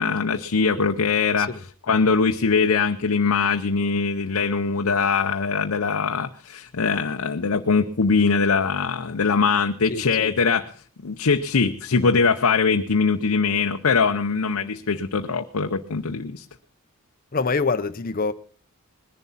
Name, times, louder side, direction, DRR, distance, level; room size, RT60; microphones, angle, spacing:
voice 1, 0.0-1.5 1.9-10.7 11.0-16.4, left 5 dB, 80° left, 0.7 m, -22 dB
voice 2, 9.9-10.3 17.3-18.3, left 4 dB, 40° left, 0.6 m, -25 dB
20.0 x 11.0 x 4.1 m
head